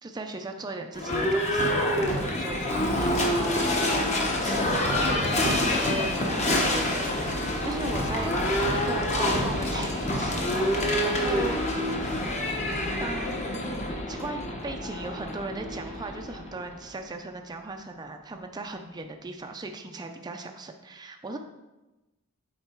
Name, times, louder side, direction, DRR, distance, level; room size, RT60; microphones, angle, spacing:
voice 1, 0.0-3.8 4.4-8.3 8.7-11.6 13.0-13.4 14.1-21.4, right 2 dB, 20° right, 4 dB, 0.4 m, -37 dB
Livestock farm animals working animals / Bell, 0.9-16.8, left 1 dB, 30° left, 1.0 m, -27 dB
8.7 x 3.9 x 4.5 m, 1.1 s
head